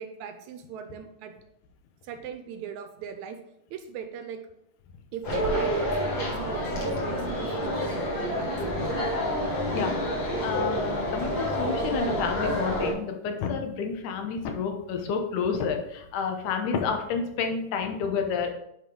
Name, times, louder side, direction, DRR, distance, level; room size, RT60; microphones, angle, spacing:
voice 1, 0.0-1.4 2.0-3.4 3.7-4.4 5.1-8.9, right 7 dB, 80° right, 7 dB, 1.9 m, -39 dB
sound 1, 5.2-12.9, equal, 45° left, 2.1 m, -28 dB
voice 2, 10.4-18.5, left 5 dB, 80° left, 4 dB, 2.4 m, -29 dB
9.1 x 4.7 x 3.7 m, 0.79 s
omnidirectional pair, 3.6 m